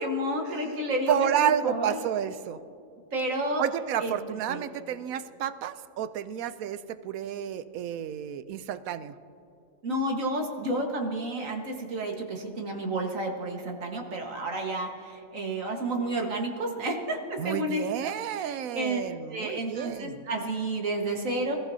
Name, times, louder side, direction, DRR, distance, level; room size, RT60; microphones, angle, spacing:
voice 1, 0.0-2.0 3.1-3.6 4.0-4.2 4.5-4.6 9.8-19.0 19.3-21.6, right 1 dB, 70° right, 1 dB, 1.9 m, -31 dB
voice 2, 1.1-2.6 3.6-9.2 17.4-20.2, right 10 dB, 90° right, 13 dB, 1.1 m, -30 dB
26.0 x 15.0 x 2.8 m, 2.7 s
omnidirectional pair, 1.4 m